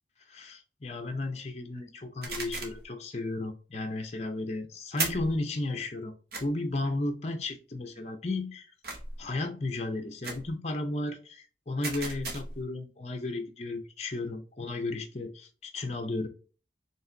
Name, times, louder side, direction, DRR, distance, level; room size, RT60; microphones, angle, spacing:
voice 1, 0.3-6.1 6.4-8.7 9.2-16.3, left 2 dB, 35° left, 0.6 m, -34 dB
sound 1, 2.2-2.8 5.0-5.4 6.3-6.4 8.8-9.2 10.2-10.5 11.8-12.6, right 3 dB, 55° right, 1.1 m, -35 dB
4.7 x 3.2 x 2.7 m
head